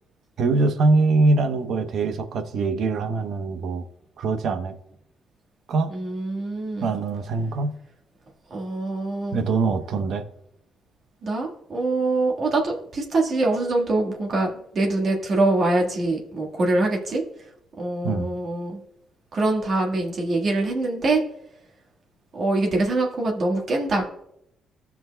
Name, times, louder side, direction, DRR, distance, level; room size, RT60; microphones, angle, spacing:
voice 1, 0.4-3.8 4.2-4.8 5.7-5.9 6.8-7.8 9.3-10.3 18.0-18.3, right 3 dB, 70° right, 8 dB, 0.9 m, -23 dB
voice 2, 5.9-6.9 8.5-9.4 11.2-17.2 17.8-18.8 19.3-21.2 22.3-24.1, right 2 dB, 50° right, 0 dB, 1.6 m, -24 dB
14.5 x 5.8 x 2.2 m, 0.76 s
cardioid pair, 90°, 0 cm